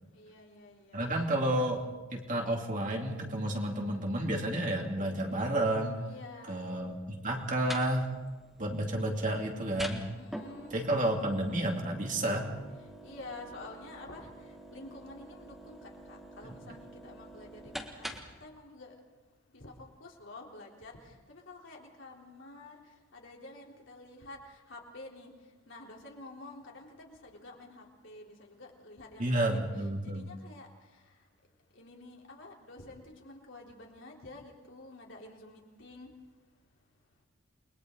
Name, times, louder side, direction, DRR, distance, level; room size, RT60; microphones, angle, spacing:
voice 1, 0.1-1.1 6.0-6.8 8.6-9.0 10.1-10.8 13.0-14.3 14.7-18.9 19.5-22.8 23.1-25.3 25.7-30.7 31.8-36.1, left 2 dB, 65° left, -1 dB, 3.7 m, -49 dB
voice 2, 0.9-1.8 2.1-6.0 6.5-8.1 8.6-10.1 10.7-12.5 29.2-30.3, right 1 dB, 40° right, 0 dB, 2.7 m, -31 dB
sound 1, 7.3-18.5, equal, ahead, 1.7 m, -46 dB
29.5 x 22.0 x 4.0 m, 1.3 s
head